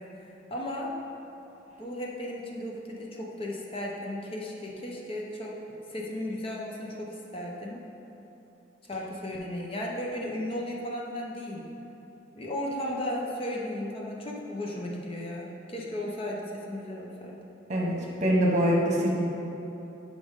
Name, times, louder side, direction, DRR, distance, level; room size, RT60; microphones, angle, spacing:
voice 1, 0.5-0.9 1.8-5.5 5.9-7.8 8.9-11.6 12.3-17.4, left 1 dB, 30° left, -2 dB, 0.8 m, -35 dB
voice 2, 18.2-19.1, equal, 40° right, -2 dB, 1.2 m, -23 dB
10.0 x 5.2 x 3.6 m, 2.9 s
head